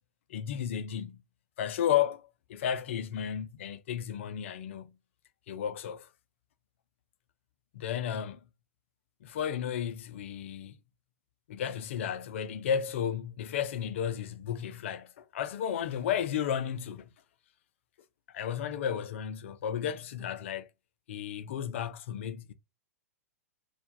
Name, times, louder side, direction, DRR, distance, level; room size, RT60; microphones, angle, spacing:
voice 1, 0.3-1.2 1.6-5.0 5.5-6.1 7.7-8.4 9.2-10.7 11.5-17.1 18.3-20.7 21.1-22.5, left 9 dB, 55° left, 0.6 m, -33 dB
4.5 x 2.4 x 3.4 m
figure-of-eight pair, 100°, 8 cm